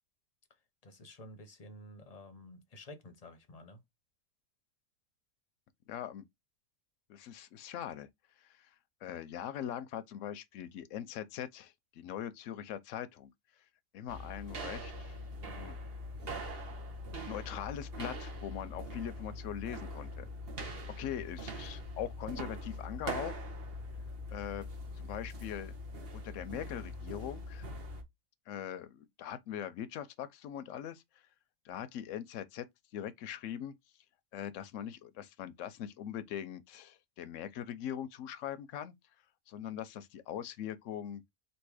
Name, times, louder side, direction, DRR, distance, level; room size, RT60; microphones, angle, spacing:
voice 1, 0.8-3.8, left 1 dB, 35° left, 0.8 m, -51 dB
voice 2, 5.9-6.2 7.1-8.1 8.4-8.7 9.0-13.3 13.9-15.2 15.5-15.8 17.3-20.3 20.9-23.4 24.3-24.7 25.0-25.7 26.1-27.6 28.5-31.0 31.6-32.7 32.9-33.7 34.3-38.9 39.5-41.3, left 10 dB, 75° left, 0.9 m, -41 dB
Footsteps on tiled bathroom, 14.1-28.0, equal, 50° right, 1.2 m, -42 dB
3.5 x 2.8 x 4.7 m
omnidirectional pair, 1.4 m